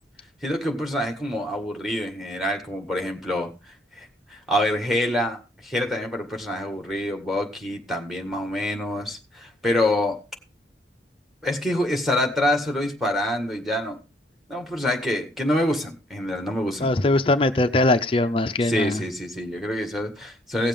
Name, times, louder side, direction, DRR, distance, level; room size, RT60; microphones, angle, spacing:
voice 1, 0.4-3.5 3.9-10.2 11.4-14.0 14.5-16.9 18.6-20.7, left 1 dB, ahead, 4 dB, 1.7 m, -26 dB
voice 2, 16.8-19.0, left 2 dB, 30° left, 9 dB, 0.5 m, -21 dB
17.5 x 7.3 x 3.5 m, 0.29 s
head